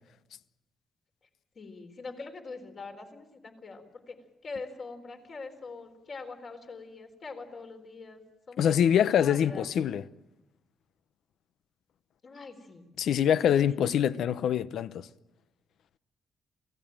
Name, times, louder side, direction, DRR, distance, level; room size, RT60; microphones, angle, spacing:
voice 1, 1.6-4.2 4.4-8.2 8.5-9.7 12.2-12.9 13.4-13.8, left 4 dB, 45° left, 4.1 m, -43 dB
voice 2, 8.6-10.0 13.0-15.1, left 9 dB, 80° left, 0.7 m, -24 dB
28.5 x 17.0 x 8.9 m
cardioid pair, 130°, 0 cm